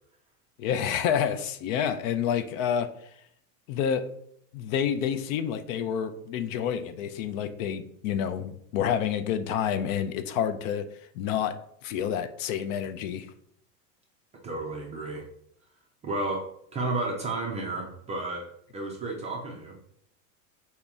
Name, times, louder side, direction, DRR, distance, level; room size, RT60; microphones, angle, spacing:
voice 1, 0.6-2.9 3.7-4.1 4.5-10.9 11.1-11.5 11.8-13.3, left 8 dB, 55° left, 10 dB, 0.5 m, -28 dB
voice 2, 14.4-15.2 16.0-18.5 18.7-19.8, right 2 dB, 15° right, -2 dB, 0.3 m, -32 dB
4.2 x 2.9 x 3.5 m, 0.70 s
hypercardioid pair, 115°, 48 cm